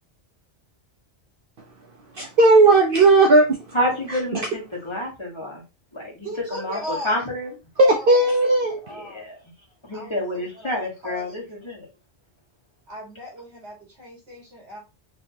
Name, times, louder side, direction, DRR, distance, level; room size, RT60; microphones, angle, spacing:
voice 1, 2.1-3.5 4.1-4.2 7.8-8.8, right 2 dB, 60° right, 1 dB, 0.8 m, -15 dB
voice 2, 3.7-5.6 5.9-6.8 7.0-7.5 8.9-9.4 9.8-11.9, left 1 dB, 25° left, -3 dB, 1.4 m, -28 dB
voice 3, 6.2-7.2 7.9-8.1 8.5-9.3 9.9-10.8 11.0-11.5 12.9-14.8, equal, 80° right, -1 dB, 1.8 m, -37 dB
4.3 x 2.9 x 2.7 m, 0.28 s
omnidirectional pair, 1.1 m